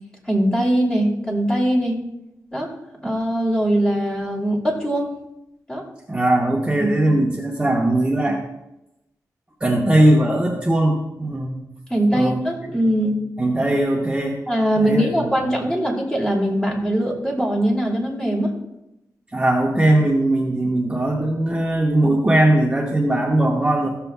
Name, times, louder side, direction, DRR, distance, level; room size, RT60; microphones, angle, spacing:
voice 1, 0.3-2.0 2.5-2.7 3.0-5.1 5.7-5.8 6.8-7.2 11.9-13.2 14.5-18.5, right 1 dB, 10° left, -3 dB, 2.8 m, -21 dB
voice 2, 6.1-8.4 9.6-11.6 12.1-13.0 13.4-14.4 14.8-15.6 19.3-23.9, right 1 dB, 15° right, -2 dB, 1.2 m, -19 dB
15.0 x 6.9 x 2.3 m, 0.91 s
cardioid pair, 75°, 6 cm